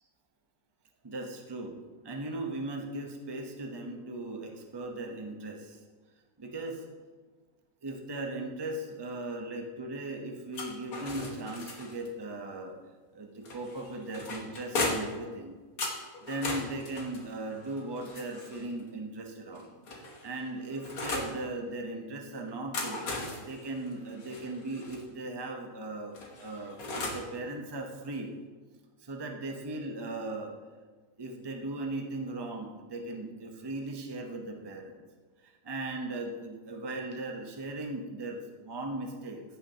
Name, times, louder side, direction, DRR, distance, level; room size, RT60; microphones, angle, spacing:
voice 1, 1.0-5.8 6.4-6.9 7.8-12.8 13.1-15.5 16.2-23.0 23.4-28.3 29.0-30.5 31.2-35.0 35.4-39.4, right 2 dB, 20° right, 2 dB, 0.7 m, -38 dB
sound 1, 10.5-12.1 13.4-15.2 15.8-18.7 19.5-21.4 22.5-25.0 26.1-27.3, left 2 dB, 65° left, 1.7 m, -37 dB
16.0 x 5.7 x 2.9 m, 1.4 s
omnidirectional pair, 1.6 m